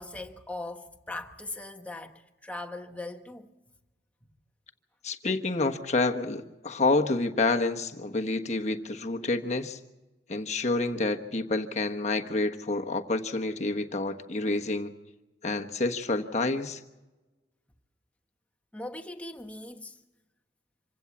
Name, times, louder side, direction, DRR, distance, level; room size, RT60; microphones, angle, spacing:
voice 1, 0.0-3.5 18.7-20.0, left 2 dB, 10° left, 1.3 m, -40 dB
voice 2, 5.0-9.8 10.3-14.9 15.4-16.8, left 2 dB, 40° left, 1.3 m, -28 dB
26.5 x 16.0 x 7.2 m
head